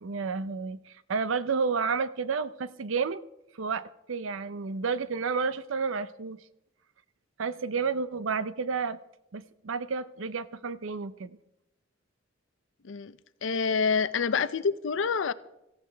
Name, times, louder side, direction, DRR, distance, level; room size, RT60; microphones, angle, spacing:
voice 1, 0.0-3.2 3.5-6.4 7.4-9.0 9.3-11.4, right 5 dB, 85° right, 0.6 m, -31 dB
voice 2, 13.4-15.3, left 5 dB, 70° left, 0.5 m, -27 dB
17.5 x 15.0 x 3.4 m
head